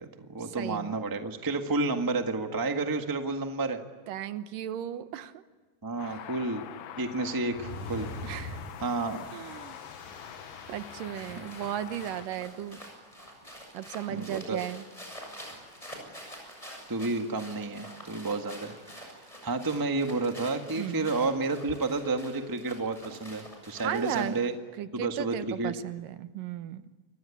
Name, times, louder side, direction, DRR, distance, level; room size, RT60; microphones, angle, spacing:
voice 1, 0.0-3.8 5.8-6.6 7.0-8.1 8.8-9.2 11.3-11.5 14.1-14.6 16.9-24.6 24.9-25.7, right 3 dB, 20° right, 5 dB, 0.5 m, -31 dB
voice 2, 0.6-1.0 4.1-5.4 8.2-8.6 9.3-9.8 10.7-12.8 13.7-14.8 20.8-21.1 23.8-24.5 24.8-26.8, right 11 dB, 90° right, 11 dB, 2.8 m, -35 dB
sound 1, 6.0-12.3, left 11 dB, 85° left, 2.7 m, -45 dB
sound 2, 7.5-12.4, left 2 dB, 70° left, 5.9 m, -43 dB
sound 3, 10.7-24.5, equal, 10° left, 7.4 m, -47 dB
29.0 x 24.0 x 8.6 m, 1.3 s
omnidirectional pair, 3.8 m